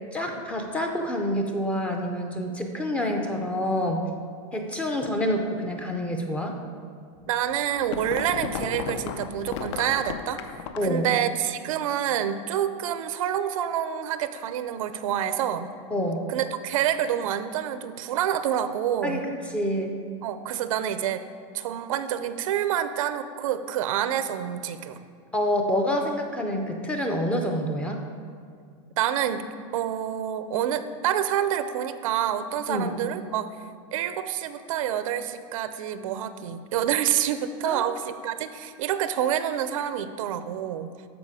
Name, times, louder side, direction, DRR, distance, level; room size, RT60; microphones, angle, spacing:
voice 1, 0.1-4.1 4.5-6.6 10.8-11.1 15.9-16.2 19.0-19.9 25.3-28.0 32.7-32.9 37.6-37.8, equal, 5° left, 3 dB, 0.5 m, -27 dB
sound 1, 7.2-11.0, left 7 dB, 60° left, 0.6 m, -34 dB
voice 2, 7.3-15.7 16.3-19.3 20.2-21.2 21.5-25.0 29.0-29.4 29.7-33.6 33.9-40.9, right 10 dB, 85° right, 11 dB, 0.6 m, -27 dB
13.0 x 5.1 x 4.9 m, 2.2 s
supercardioid pair, 180°, 17 cm